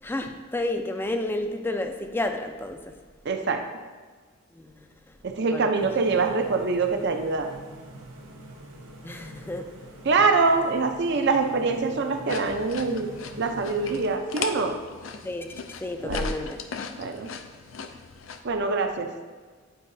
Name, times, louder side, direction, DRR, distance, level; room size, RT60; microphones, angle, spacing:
voice 1, 0.0-2.9 4.5-4.7 5.5-5.7 9.0-9.7 15.2-15.5 15.8-16.6, left 1 dB, 10° left, 6 dB, 0.4 m, -31 dB
voice 2, 3.2-3.6 5.2-7.5 10.0-13.1 13.4-14.8 16.0-16.3 17.0-17.3 18.4-19.1, right 4 dB, 60° right, 5 dB, 0.6 m, -24 dB
sound 1, 5.8-14.2, right 1 dB, 85° right, 1.0 m, -45 dB
sound 2, 12.3-18.4, left 5 dB, 75° left, 0.5 m, -37 dB
9.1 x 4.7 x 2.7 m, 1.4 s
head